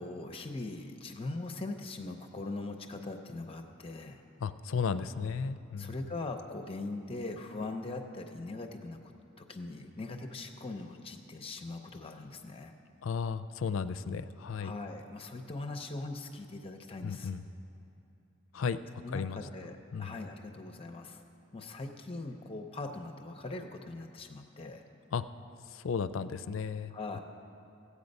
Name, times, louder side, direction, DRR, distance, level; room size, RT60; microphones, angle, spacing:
voice 1, 0.0-4.2 5.8-9.1 9.4-12.7 14.6-17.3 19.0-21.2 21.5-24.8 26.9-27.2, left 2 dB, 30° left, 5 dB, 0.6 m, -41 dB
voice 2, 4.4-6.1 13.0-14.7 17.0-17.5 18.5-18.8 19.1-19.4 19.9-20.1 25.1-25.2 25.7-27.2, left 6 dB, 75° left, 12 dB, 0.4 m, -34 dB
15.5 x 8.4 x 5.3 m, 2.7 s
head